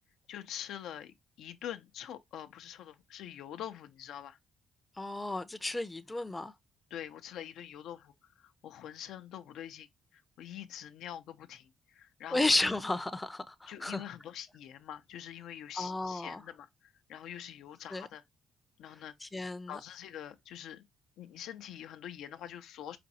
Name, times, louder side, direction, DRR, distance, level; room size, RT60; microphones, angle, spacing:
voice 1, 0.3-4.4 6.9-9.9 10.1-12.5 13.7-18.2 18.8-19.1 19.7-20.9 21.2-23.0, left 10 dB, 85° left, 0.5 m, -45 dB
voice 2, 5.0-6.5 12.3-14.0 15.8-16.4 17.9-18.1 19.2-19.8, left 2 dB, 15° left, 0.5 m, -33 dB
5.0 x 2.3 x 2.7 m
cardioid pair, 90°, 0 cm